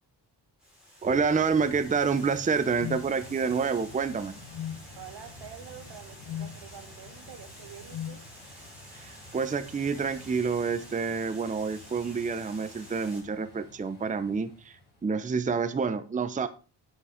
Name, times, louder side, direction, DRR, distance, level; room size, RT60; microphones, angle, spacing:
Water, 0.6-13.2, equal, ahead, 6.3 m, -50 dB
sound 1, 1.0-15.3, left 1 dB, 25° left, 7.4 m, -51 dB
voice 1, 1.0-4.3 8.9-16.5, right 5 dB, 20° right, 11 dB, 0.7 m, -28 dB
sound 2, 2.8-3.1 4.5-4.8 6.3-6.6 7.9-8.2, left 10 dB, 75° left, 0.7 m, -36 dB
voice 2, 4.9-8.2, right 9 dB, 80° right, 8 dB, 1.9 m, -47 dB
9.4 x 8.2 x 5.0 m, 0.34 s
cardioid pair, 150°, 40 cm